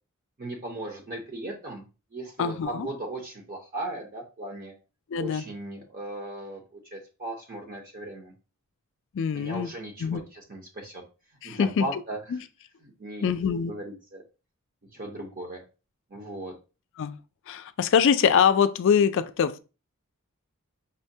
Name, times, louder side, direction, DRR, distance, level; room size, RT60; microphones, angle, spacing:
voice 1, 0.4-1.8 2.1-4.7 5.2-8.3 9.3-11.0 11.4-12.2 12.8-13.4 13.7-14.2 14.9-15.6 16.1-16.5, right 1 dB, 40° right, 0.7 m, -37 dB
voice 2, 2.4-2.9 5.1-5.4 9.1-9.7 10.0-10.2 11.4-11.9 12.3-12.4 13.2-13.7 17.0-17.2 17.5-19.6, left 7 dB, 60° left, 0.3 m, -23 dB
5.4 x 2.2 x 2.7 m
head